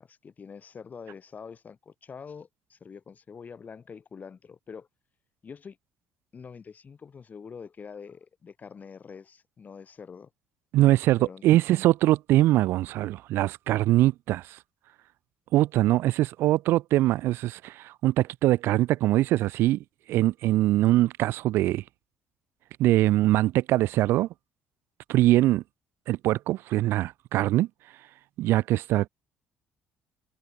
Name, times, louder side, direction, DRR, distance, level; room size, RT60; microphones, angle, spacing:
voice 1, 0.0-4.9 5.4-5.8 6.3-10.3 11.2-11.5, left 6 dB, 40° left, 7.8 m, -45 dB
voice 2, 10.7-14.4 15.5-19.8 20.1-21.8 22.8-24.3 25.1-25.6 26.1-27.7 28.4-29.1, right 16 dB, 70° right, 0.7 m, -22 dB
hypercardioid pair, 60°, 4 cm